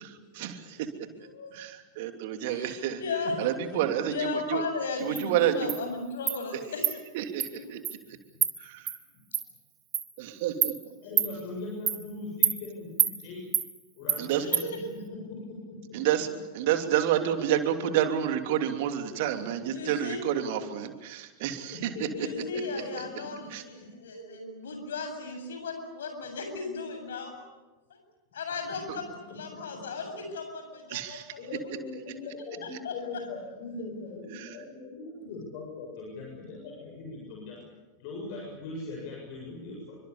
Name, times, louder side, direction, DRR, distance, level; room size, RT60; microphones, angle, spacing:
voice 1, 0.3-0.8 1.5-3.0 3.4-4.6 5.0-5.8 7.1-7.8 8.6-8.9 10.2-11.0 14.2-14.4 15.9-16.3 16.5-21.9 23.5-23.6 28.9-29.0 30.9-31.3 34.3-34.5, right 10 dB, 50° right, 6 dB, 3.0 m, -29 dB
voice 2, 1.2-1.5 2.4-3.3 3.8-7.0 7.5-7.7 14.3-14.8 19.7-20.2 22.2-27.4 27.9-28.0 28.3-32.1 32.8-33.0, left 4 dB, 65° left, 6 dB, 7.9 m, -36 dB
Insect, 5.2-5.3 5.7-5.8 6.3-6.4 6.8-6.9 7.4-7.5 7.8-8.0 8.4-8.5 8.9-9.0 9.3-9.4 9.9-10.1 10.6-10.7 11.2-11.3 11.9-12.0 12.4-12.6 13.0-13.1 13.5-13.7 14.1-14.2 14.5-14.6, right 9 dB, 30° right, 2.9 m, -25 dB
voice 3, 11.0-13.5 14.0-16.0 19.4-19.5 21.4-23.0 28.7-28.8 31.4-37.6 38.0-40.0, left 3 dB, 45° left, -1 dB, 7.7 m, -40 dB
29.0 x 25.0 x 7.2 m, 1.2 s
figure-of-eight pair, 90°, 0 cm